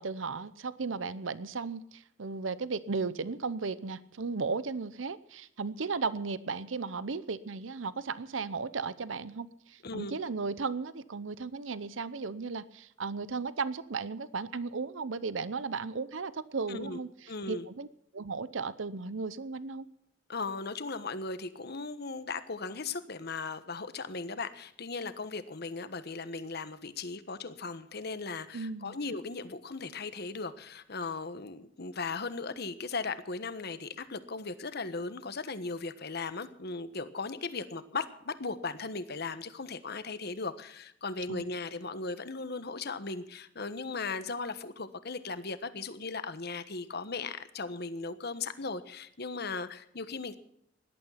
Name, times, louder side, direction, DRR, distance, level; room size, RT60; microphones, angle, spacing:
voice 1, 0.0-17.1 17.5-17.9 18.1-19.9 28.5-29.0 41.3-41.5, right 4 dB, 85° right, 16 dB, 0.8 m, -35 dB
voice 2, 9.8-10.2 16.7-17.0 17.3-17.7 20.3-50.4, left 4 dB, 55° left, 12 dB, 1.3 m, -37 dB
18.0 x 12.0 x 5.7 m, 0.73 s
head